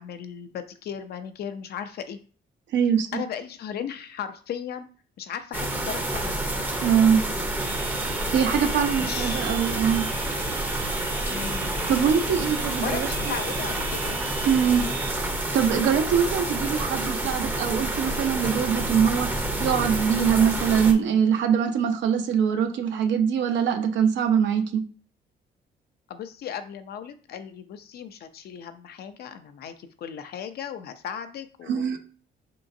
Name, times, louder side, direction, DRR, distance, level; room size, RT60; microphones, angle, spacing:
voice 1, 0.0-2.2 3.1-4.9 5.2-6.4 6.8-7.2 8.9-9.5 11.3-11.8 12.8-14.2 26.1-32.0, left 8 dB, 60° left, 9 dB, 0.5 m, -36 dB
voice 2, 2.7-3.2 6.8-7.2 8.0-10.0 11.9-13.3 14.4-14.9 15.5-19.3 19.6-24.8 31.7-32.0, right 7 dB, 80° right, 6 dB, 0.7 m, -23 dB
sound 1, 5.5-20.9, right 1 dB, 10° right, 0.6 m, -28 dB
sound 2, 7.6-15.1, right 4 dB, 50° right, 0.8 m, -39 dB
4.8 x 3.7 x 2.6 m, 0.40 s
cardioid pair, 165°, 19 cm